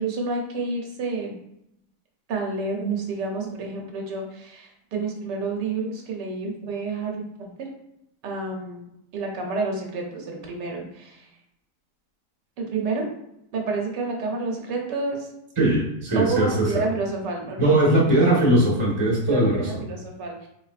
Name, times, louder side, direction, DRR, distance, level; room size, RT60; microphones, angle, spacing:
voice 1, 0.0-1.3 2.3-7.7 8.2-8.9 9.1-11.3 12.6-13.1 13.5-15.3 16.1-17.7 19.2-20.5, right 3 dB, 90° right, 0 dB, 1.4 m, -29 dB
voice 2, 15.6-16.8 17.6-19.8, right 1 dB, 20° right, -3 dB, 1.0 m, -20 dB
3.9 x 3.9 x 2.4 m, 0.80 s
omnidirectional pair, 1.8 m